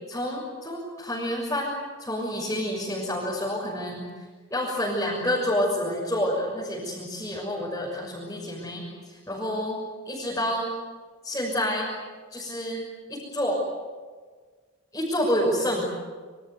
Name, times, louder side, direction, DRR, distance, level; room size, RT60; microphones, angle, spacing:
voice 1, 0.1-1.7 2.0-4.0 4.5-10.7 11.2-11.9 12.3-12.8 13.1-13.6 14.9-15.9, equal, 15° left, -5 dB, 6.4 m, -28 dB
28.0 x 25.5 x 8.2 m, 1.5 s
head